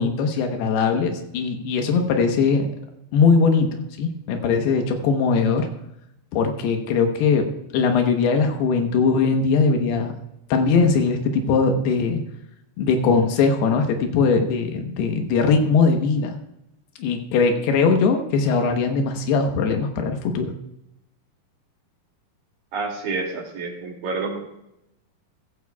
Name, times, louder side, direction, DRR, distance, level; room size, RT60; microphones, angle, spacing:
voice 1, 0.0-2.7 3.1-5.7 6.3-7.5 7.7-10.1 10.5-12.2 12.8-16.4 17.0-20.5, left 5 dB, 90° left, 4 dB, 3.2 m, -20 dB
voice 2, 22.7-24.4, right 4 dB, 65° right, -1 dB, 4.1 m, -28 dB
14.5 x 14.5 x 2.3 m, 0.84 s
omnidirectional pair, 4.5 m